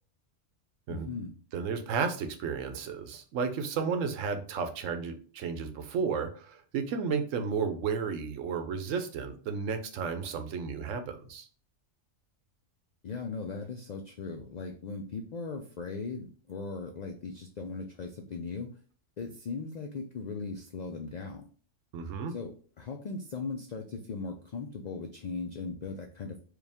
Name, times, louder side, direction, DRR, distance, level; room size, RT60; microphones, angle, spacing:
voice 1, 0.9-1.4 13.0-18.7 19.2-21.4 22.3-26.4, left 4 dB, 90° left, 3 dB, 0.3 m, -38 dB
voice 2, 1.5-11.5 21.9-22.3, right 5 dB, 85° right, 7 dB, 1.0 m, -33 dB
4.8 x 2.4 x 3.4 m, 0.42 s
omnidirectional pair, 1.3 m